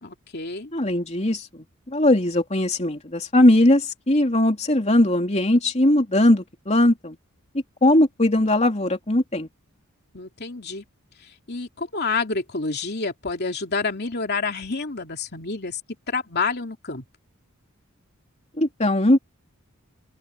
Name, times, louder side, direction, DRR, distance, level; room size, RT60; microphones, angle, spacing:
voice 1, 0.0-0.7 10.1-10.8 11.2-15.8 16.1-17.0, left 4 dB, 50° left, 3.0 m, -28 dB
voice 2, 0.7-1.5 1.9-7.2 7.8-9.5 18.6-19.2, left 1 dB, 30° left, 3.2 m, -19 dB
open air
head